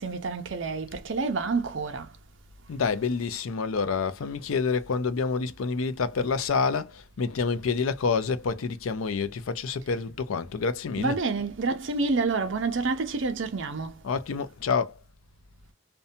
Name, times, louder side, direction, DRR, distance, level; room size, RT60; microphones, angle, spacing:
voice 1, 0.0-2.1 11.0-14.0, right 4 dB, 65° right, 0.6 m, -28 dB
voice 2, 2.7-11.2 14.0-15.0, left 5 dB, 85° left, 0.5 m, -28 dB
2.6 x 2.2 x 2.6 m
head